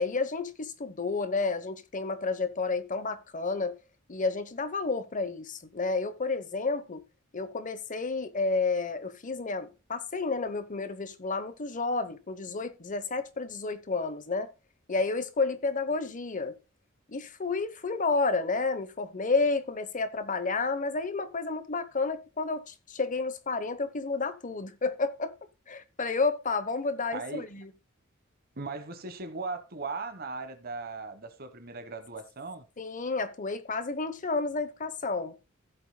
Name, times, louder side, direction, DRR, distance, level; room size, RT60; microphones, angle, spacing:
voice 1, 0.0-3.8 4.1-7.0 7.3-14.5 14.9-16.6 17.1-25.3 25.7-27.7 32.8-35.3, left 3 dB, 40° left, 0.9 m, -31 dB
voice 2, 27.1-27.5 28.6-32.6, right 3 dB, 50° right, 1.3 m, -38 dB
15.5 x 8.2 x 2.2 m
head